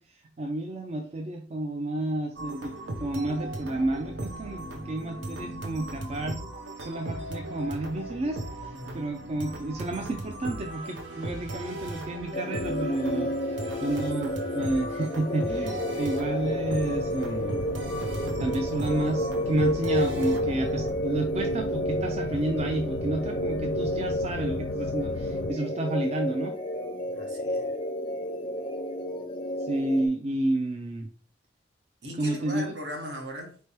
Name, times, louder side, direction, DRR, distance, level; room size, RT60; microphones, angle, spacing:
voice 1, 0.0-2.7 3.0-6.4 6.8-17.6 18.3-26.5 29.6-31.1 32.2-32.7, right 2 dB, 35° right, 3 dB, 0.4 m, -31 dB
sound 1, 2.4-20.9, right 1 dB, 85° right, 0.8 m, -37 dB
voice 2, 8.7-9.1 27.1-27.7 32.0-33.6, equal, 65° right, 3 dB, 1.1 m, -39 dB
sound 2, 12.3-30.1, equal, 30° left, 0.5 m, -31 dB
sound 3, 16.6-25.5, left 4 dB, 85° left, 0.3 m, -37 dB
4.3 x 3.3 x 3.0 m, 0.41 s
head